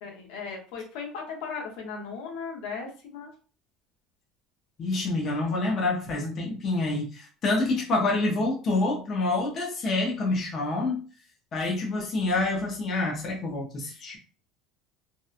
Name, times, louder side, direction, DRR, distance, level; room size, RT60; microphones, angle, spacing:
voice 1, 0.0-3.3, left 5 dB, 65° left, 1 dB, 0.8 m, -37 dB
voice 2, 4.8-11.0 11.5-14.2, left 2 dB, 25° left, -2 dB, 0.5 m, -27 dB
2.7 x 2.1 x 2.4 m, 0.37 s
cardioid pair, 180°, 0 cm